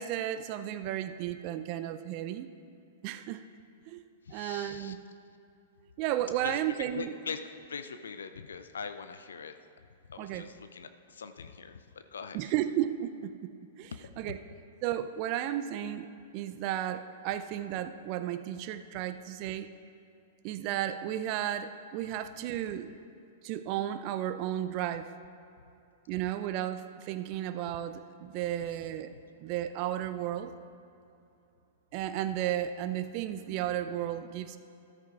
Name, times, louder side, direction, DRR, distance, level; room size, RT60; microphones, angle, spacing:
voice 1, 0.0-2.5 3.0-3.4 3.9-4.0 4.3-5.0 6.0-7.2 10.2-10.5 12.3-14.4 14.8-19.7 20.4-22.9 23.4-25.1 26.1-29.1 29.4-30.5 31.9-34.6, right 12 dB, 40° right, 10 dB, 0.4 m, -34 dB
voice 2, 4.2-5.0 6.4-7.4 7.7-9.6 10.1-12.5 13.9-14.1, left 6 dB, 70° left, 9 dB, 0.4 m, -42 dB
13.5 x 13.0 x 2.4 m, 2.7 s
figure-of-eight pair, 105°, 0 cm